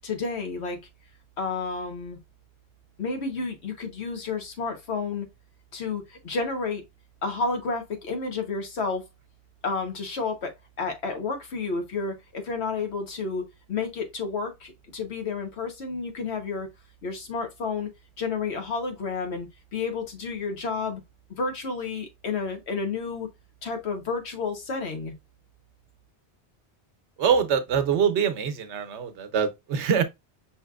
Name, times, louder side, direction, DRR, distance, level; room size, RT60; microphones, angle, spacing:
voice 1, 0.0-0.8 1.4-2.2 3.0-5.3 5.7-6.8 7.2-9.0 9.6-10.5 10.8-13.4 13.7-16.7 17.0-17.9 18.2-21.0 21.3-23.3 23.6-25.1, left 4 dB, 75° left, 1.2 m, -31 dB
voice 2, 27.2-30.0, right 7 dB, 85° right, 1.0 m, -24 dB
5.6 x 2.9 x 2.3 m
omnidirectional pair, 1.1 m